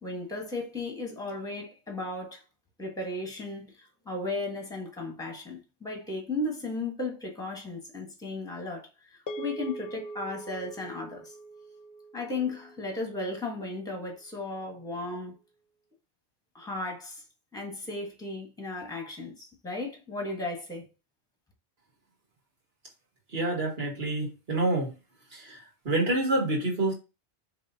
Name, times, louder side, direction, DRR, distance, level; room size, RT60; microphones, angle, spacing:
voice 1, 0.0-2.4 2.8-11.3 12.1-15.3 16.5-17.2 17.5-20.9, left 2 dB, 5° left, 1.2 m, -35 dB
sound 1, 9.3-13.8, right 2 dB, 60° left, 0.9 m, -43 dB
voice 2, 23.3-25.0 25.3-26.9, right 2 dB, 60° right, 2.1 m, -28 dB
5.4 x 3.0 x 2.8 m
omnidirectional pair, 1.1 m